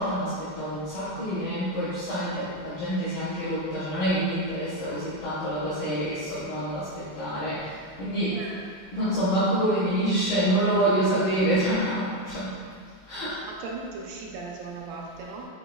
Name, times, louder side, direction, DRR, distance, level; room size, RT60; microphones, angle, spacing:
voice 1, 0.0-6.9 7.2-7.6 8.0-8.4 8.9-12.5 13.1-13.4, right 1 dB, 80° left, -11 dB, 2.2 m, -26 dB
voice 2, 8.3-8.6 9.0-9.5 13.4-15.5, right 3 dB, 85° right, -2 dB, 3.1 m, -38 dB
7.5 x 3.1 x 2.2 m, 2.1 s
omnidirectional pair, 5.7 m